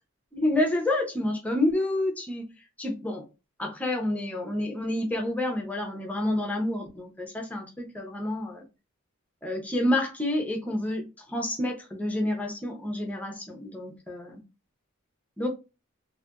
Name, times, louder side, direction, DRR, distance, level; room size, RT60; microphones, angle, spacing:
voice 1, 0.3-2.5 2.8-3.2 3.6-8.7 9.4-14.4 15.4-15.5, left 1 dB, 5° left, 0.6 m, -29 dB
2.6 x 2.5 x 2.2 m
head